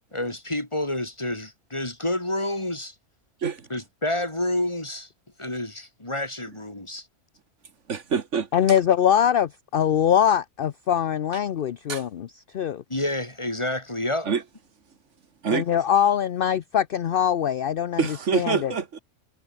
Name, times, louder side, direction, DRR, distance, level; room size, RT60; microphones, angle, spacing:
voice 1, 0.1-2.9 3.7-5.1 5.4-7.1 12.9-14.3, left 1 dB, 20° left, 3.0 m, -29 dB
voice 2, 7.9-8.8 11.9-12.0 14.2-14.4 15.4-15.7 18.0-19.0, right 6 dB, 65° right, 1.6 m, -26 dB
voice 3, 8.5-12.3 12.5-12.8 15.5-18.1 18.3-18.7, left 9 dB, 55° left, 0.7 m, -22 dB
omnidirectional pair, 1.4 m